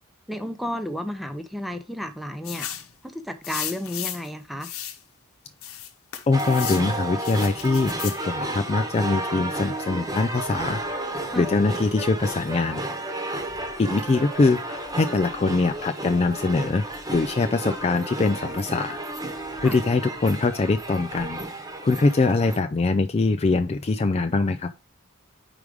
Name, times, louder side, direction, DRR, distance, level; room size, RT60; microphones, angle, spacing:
voice 1, 0.3-2.7 3.0-4.7 11.3-11.5 19.6-19.8, equal, ahead, 0.7 m, -32 dB
sound 1, 2.4-2.9 3.4-4.3 4.6-5.0 5.6-6.9 7.2-8.2, left 10 dB, 70° left, 1.0 m, -34 dB
voice 2, 6.3-10.8 11.3-12.8 13.8-19.0 19.6-21.4 21.8-24.7, left 3 dB, 30° left, 0.4 m, -23 dB
sound 2, 6.3-22.6, right 1 dB, 15° right, 1.1 m, -32 dB
5.0 x 4.7 x 5.1 m
head